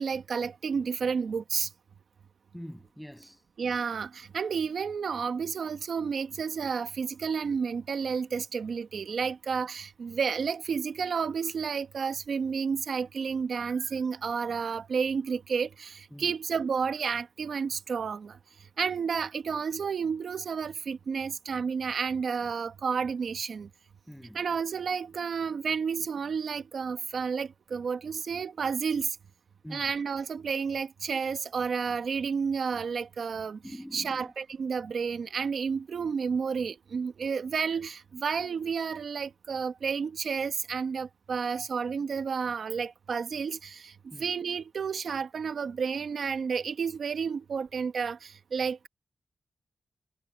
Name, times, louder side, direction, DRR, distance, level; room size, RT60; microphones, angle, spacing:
voice 1, 0.0-1.7 3.6-18.4 18.8-23.7 24.3-29.2 29.7-33.6 33.9-48.9, right 6 dB, 70° right, 1.5 m, -31 dB
voice 2, 2.5-3.4 16.1-16.3 24.1-24.4 29.6-29.9 33.6-34.3 37.7-37.8 44.1-44.3, equal, ahead, 7.5 m, -44 dB
wide cardioid pair, 100°, 0 cm